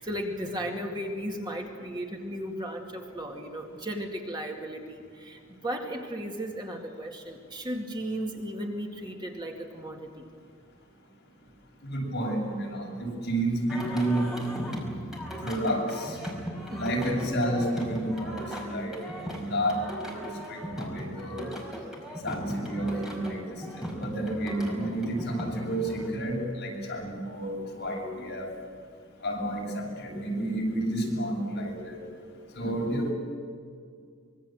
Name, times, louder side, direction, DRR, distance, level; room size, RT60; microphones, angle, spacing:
voice 1, 0.0-10.3 16.7-17.1 32.6-33.0, equal, 20° right, 1 dB, 2.2 m, -35 dB
voice 2, 11.8-14.3 15.4-16.2 16.8-19.0 19.2-21.5 22.2-28.5 29.2-32.0 32.5-33.1, right 1 dB, 55° left, -2 dB, 7.8 m, -30 dB
Singing, 13.7-26.1, equal, 5° right, 5.1 m, -38 dB
25.5 x 23.0 x 7.9 m, 2.1 s
head